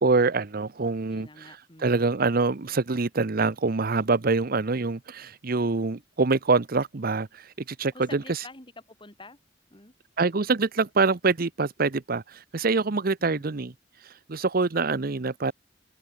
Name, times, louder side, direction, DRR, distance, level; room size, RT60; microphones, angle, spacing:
voice 1, 0.0-1.3 1.8-8.4 10.2-13.7 14.0-15.5, right 3 dB, 50° right, 0.8 m, -25 dB
voice 2, 1.1-2.0 7.9-9.4 9.7-9.9 13.2-13.7, left 2 dB, 25° left, 4.5 m, -48 dB
open air
head